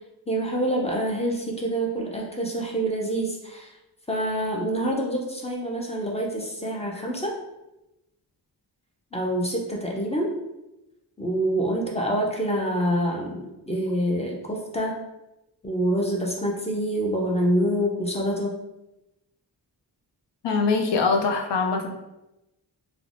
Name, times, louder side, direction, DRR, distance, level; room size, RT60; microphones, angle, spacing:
voice 1, 0.3-3.7 4.1-7.3 9.1-10.3 11.2-15.0 15.6-18.6, right 1 dB, 15° left, -1 dB, 0.4 m, -26 dB
voice 2, 20.4-21.9, left 4 dB, 90° left, 3 dB, 0.5 m, -23 dB
3.1 x 2.0 x 2.5 m, 0.94 s
wide cardioid pair, 125°, 41 cm